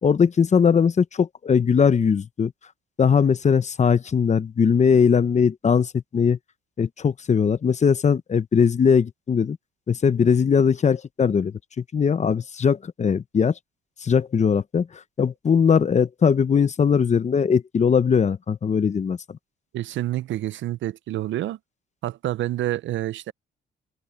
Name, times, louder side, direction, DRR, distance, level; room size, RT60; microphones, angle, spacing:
voice 1, 0.0-2.5 3.0-6.4 6.8-9.6 9.9-13.5 14.0-14.9 15.2-19.4, left 6 dB, 35° left, 0.8 m, -20 dB
voice 2, 19.7-21.6 22.0-23.3, right 14 dB, 70° right, 0.6 m, -28 dB
cardioid pair, 90°, 20 cm